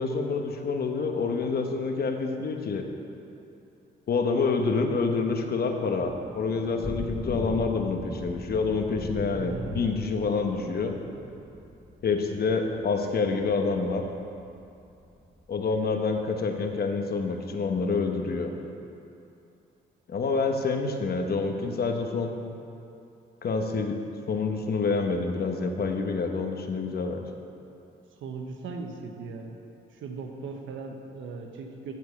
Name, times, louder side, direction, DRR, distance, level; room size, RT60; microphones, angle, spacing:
voice 1, 0.0-2.8 4.1-11.0 12.0-14.0 15.5-18.5 20.1-22.3 23.4-27.2, left 4 dB, 50° left, 4 dB, 1.1 m, -27 dB
Thunder / Rain, 6.0-15.4, left 1 dB, 10° left, 0.8 m, -40 dB
voice 2, 9.4-9.9 28.2-29.6 29.9-31.9, right 4 dB, 75° right, 4 dB, 1.1 m, -38 dB
13.0 x 4.6 x 7.2 m, 2.7 s
cardioid pair, 90°, 20 cm